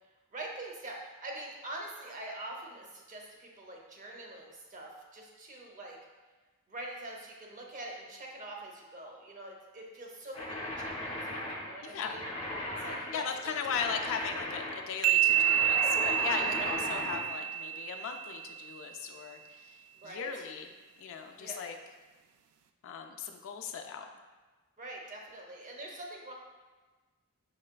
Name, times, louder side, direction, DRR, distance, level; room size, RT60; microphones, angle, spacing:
voice 1, 0.3-6.0 6.7-12.3 12.8-13.8 16.5-16.7 19.9-20.3 21.3-21.6 24.8-26.3, right 1 dB, 35° right, 0 dB, 0.6 m, -44 dB
sound 1, 10.3-17.2, left 1 dB, 25° left, 0.7 m, -38 dB
voice 2, 11.8-12.2 13.1-21.8 22.8-24.1, left 6 dB, 65° left, 5 dB, 0.3 m, -38 dB
sound 2, 15.0-18.6, right 10 dB, 80° right, 0.3 m, -28 dB
5.6 x 3.2 x 2.2 m, 1.3 s
head